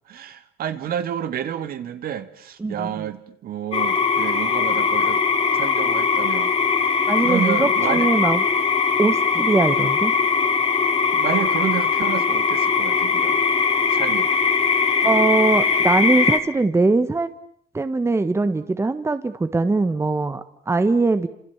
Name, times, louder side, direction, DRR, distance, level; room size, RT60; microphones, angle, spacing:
voice 1, 0.1-5.2 5.5-8.1 11.1-13.4 13.9-14.3, right 10 dB, 60° right, 9 dB, 2.2 m, -30 dB
voice 2, 2.6-3.0 7.1-8.4 9.0-10.1 15.0-17.3 17.7-21.3, right 3 dB, 15° right, 11 dB, 1.4 m, -21 dB
sound 1, 3.7-16.4, left 5 dB, 35° left, 3.0 m, -20 dB
29.5 x 27.5 x 7.4 m, 0.64 s
cardioid pair, 110°, 17 cm